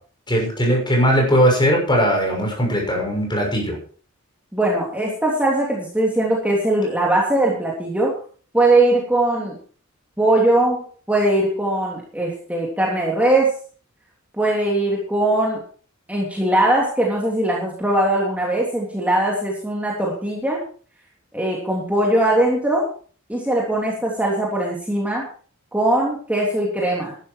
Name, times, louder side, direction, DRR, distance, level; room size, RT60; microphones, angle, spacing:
voice 1, 0.3-3.8, equal, 20° left, 1 dB, 6.5 m, -19 dB
voice 2, 4.5-8.1 8.5-9.6 10.2-13.5 14.3-15.6 16.1-20.6 21.3-22.9 23.3-25.3 25.7-27.2, right 1 dB, 5° right, -3 dB, 3.2 m, -20 dB
13.5 x 12.0 x 4.7 m, 0.42 s
head